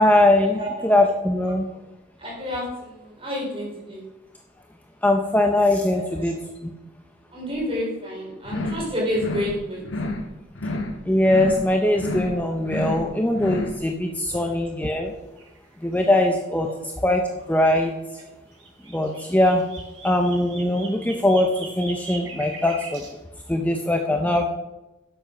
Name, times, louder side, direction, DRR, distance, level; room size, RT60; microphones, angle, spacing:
voice 1, 0.0-1.7 5.0-6.4 11.1-15.1 15.8-16.7 17.0-17.9 18.9-19.6 20.0-23.0 23.5-24.5, left 1 dB, 10° left, 2 dB, 0.7 m, -21 dB
voice 2, 2.2-4.0 6.0-6.3 7.3-9.8 14.3-14.4, left 1 dB, 30° right, -3 dB, 4.3 m, -29 dB
sound 1, 8.4-8.9 9.1-9.6 9.8-10.3 10.5-11.0 11.2-11.7 11.9-12.4 12.6-13.1 13.3-13.8, left 2 dB, 80° left, 1.4 m, -29 dB
sound 2, 15.4-15.6 15.8-15.9 18.6-23.1, right 4 dB, 90° right, 3.7 m, -40 dB
11.5 x 7.5 x 5.2 m, 0.99 s
head